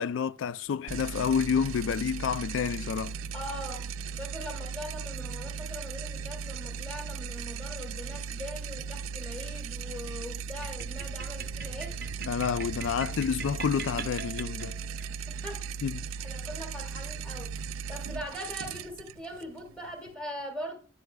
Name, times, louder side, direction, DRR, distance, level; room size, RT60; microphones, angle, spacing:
voice 1, 0.0-3.2 12.3-14.8 15.8-16.1, left 7 dB, 70° left, 0.3 m, -29 dB
sound 1, 0.9-20.2, right 6 dB, 90° right, 0.3 m, -37 dB
voice 2, 3.3-12.0 14.6-14.8 15.3-15.8 16.2-17.5 17.9-20.8, equal, 5° left, 1.7 m, -41 dB
sound 2, 10.6-15.1, right 5 dB, 50° right, 0.7 m, -42 dB
9.7 x 7.9 x 2.2 m
head